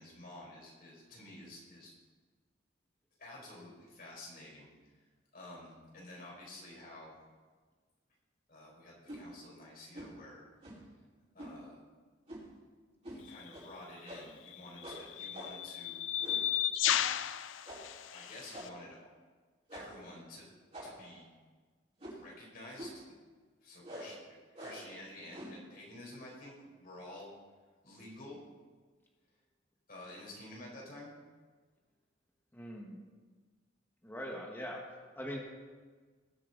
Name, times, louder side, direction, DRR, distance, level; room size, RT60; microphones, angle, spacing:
voice 1, 0.0-1.9 3.2-4.7 5.3-7.2 8.5-10.4 11.3-11.8 13.1-16.0 18.1-19.1 19.7-20.5 20.8-21.3 22.1-23.1 23.6-27.3 27.8-28.4 29.9-31.1, left 1 dB, 50° left, -3 dB, 4.1 m, -50 dB
sound 1, 9.0-9.2 9.9-10.2 10.6-10.9 11.4-11.6 12.3-12.6 13.0-13.2 13.5-13.7 14.0-14.4 14.8-15.7 16.2-16.5 16.8-17.1 17.6-18.0 18.5-18.9 19.7-20.0 20.7-21.2 22.0-22.3 22.8-23.1 23.8-24.2 24.5-24.9 25.3-25.6, equal, 35° right, 4.5 m, -47 dB
sound 2, 13.3-13.5 14.5-18.7, left 11 dB, 90° left, 0.5 m, -34 dB
voice 2, 32.5-33.0 34.0-34.8 35.1-35.4, equal, 10° left, -1 dB, 1.5 m, -41 dB
19.5 x 7.3 x 4.0 m, 1.4 s
head